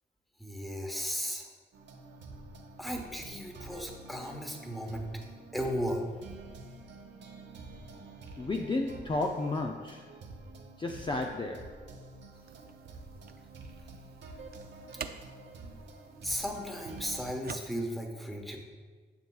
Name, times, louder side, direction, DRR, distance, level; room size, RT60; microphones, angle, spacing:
voice 1, 0.4-1.5 2.8-5.1 5.5-6.1 16.2-18.6, equal, ahead, 1 dB, 1.2 m, -35 dB
sound 1, 1.7-17.3, right 3 dB, 80° right, 0.9 m, -48 dB
voice 2, 8.4-10.1 10.8-11.8, left 2 dB, 25° left, 2 dB, 0.5 m, -32 dB
sound 2, 12.3-18.0, right 7 dB, 55° right, 0.5 m, -48 dB
9.6 x 6.8 x 2.4 m, 1.4 s
cardioid pair, 85°, 18 cm